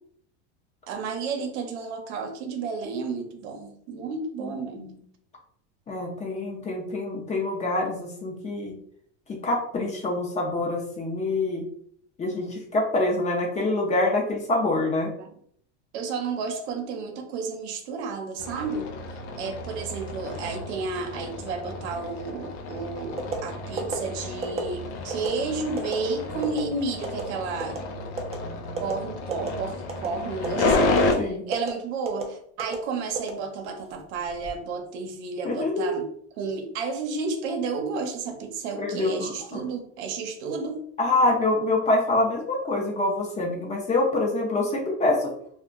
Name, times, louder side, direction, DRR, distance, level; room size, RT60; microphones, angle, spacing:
voice 1, 0.9-5.0 7.3-7.4 15.2-15.3 15.9-18.9 19.3-27.9 28.8-36.1 36.4-40.8, right 4 dB, 80° right, 4 dB, 0.8 m, -32 dB
voice 2, 4.4-5.0 5.9-8.8 9.3-11.6 12.2-15.1 31.2-31.5 35.4-36.0 38.8-39.6 41.0-45.3, left 2 dB, 20° left, 0 dB, 0.6 m, -26 dB
sound 1, 18.4-31.1, left 2 dB, 80° left, 0.6 m, -31 dB
sound 2, 23.2-23.4 23.8-24.0 24.4-24.7 25.1-25.3 25.8-26.0 26.4-26.6 27.0-27.2 27.6-27.8 28.2-28.4 28.8-28.9 29.3-29.6 29.9-30.1 30.4-30.6 31.0-31.2 31.5-31.7 32.1-32.2 32.6-32.8 33.2-33.8 34.2-34.5, right 5 dB, 20° right, 0.4 m, -30 dB
2.3 x 2.2 x 3.7 m, 0.64 s
supercardioid pair, 130°, 33 cm